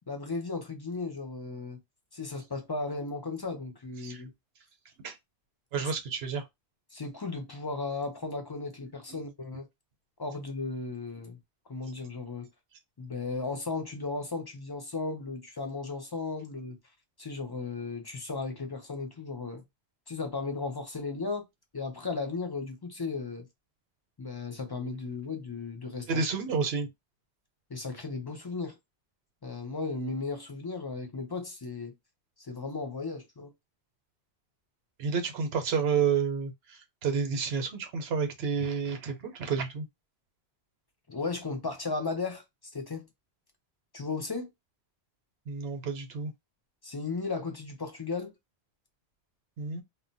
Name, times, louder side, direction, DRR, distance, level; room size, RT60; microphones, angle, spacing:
voice 1, 0.1-1.8 2.1-4.3 5.8-5.9 6.9-9.7 10.2-11.4 11.7-12.5 13.0-16.8 17.2-19.6 20.1-21.5 21.7-23.5 24.2-26.2 27.7-28.8 29.4-31.9 32.4-33.5 41.1-42.4 42.7-43.1 43.9-44.5 46.8-48.3, left 3 dB, 40° left, 0.3 m, -35 dB
voice 2, 5.7-6.5 9.1-9.2 26.1-26.9 35.0-39.9 45.5-46.3 49.6-49.8, right 6 dB, 70° right, 0.9 m, -30 dB
2.2 x 2.1 x 3.8 m
omnidirectional pair, 1.1 m